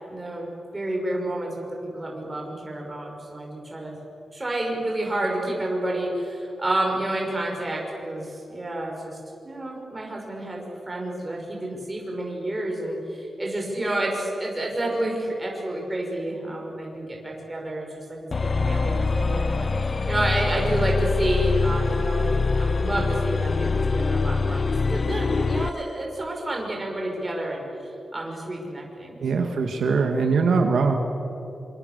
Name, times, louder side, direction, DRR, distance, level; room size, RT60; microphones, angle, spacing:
voice 1, 0.1-1.5 1.8-4.0 4.3-9.2 9.4-24.6 24.9-29.6 29.8-30.1, right 1 dB, 15° right, -1 dB, 6.0 m, -30 dB
sound 1, 18.3-25.8, left 4 dB, 35° left, 0.5 m, -24 dB
voice 2, 29.2-30.9, right 4 dB, 75° right, 4 dB, 2.1 m, -22 dB
26.5 x 26.5 x 7.0 m, 2.8 s
wide cardioid pair, 170°, 0 cm